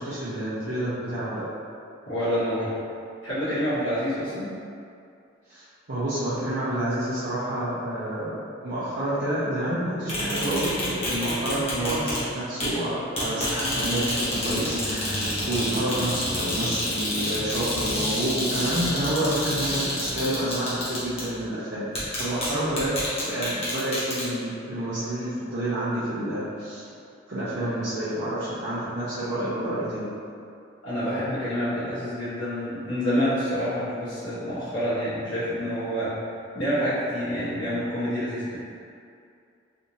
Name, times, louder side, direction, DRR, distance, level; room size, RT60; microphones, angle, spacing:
voice 1, 0.0-1.4 5.5-14.2 14.4-21.9 22.1-22.9 23.2-26.8 27.3-30.1, right 1 dB, 65° right, -12 dB, 0.7 m, -29 dB
voice 2, 2.1-2.7 3.2-4.5 30.8-36.1 36.5-38.6, equal, 75° left, -13 dB, 1.3 m, -27 dB
sound 1, 10.1-12.2 12.6-12.7 13.1-21.3 21.9-22.5 22.8-24.2, left 1 dB, 35° left, 1.0 m, -28 dB
3.4 x 2.8 x 2.8 m, 2.5 s
head